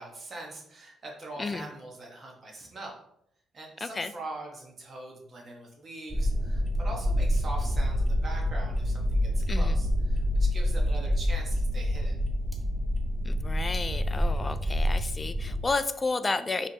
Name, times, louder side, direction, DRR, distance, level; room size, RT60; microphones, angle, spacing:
voice 1, 0.0-3.0 3.5-12.1, right 2 dB, 45° right, -1 dB, 1.3 m, -42 dB
voice 2, 1.4-1.7 3.8-4.1 9.5-9.8 13.2-16.7, left 3 dB, 25° left, 11 dB, 0.3 m, -32 dB
sound 1, 6.1-15.7, equal, 10° right, 0.8 m, -27 dB
4.9 x 3.3 x 2.9 m, 0.73 s
cardioid pair, 90°, 0 cm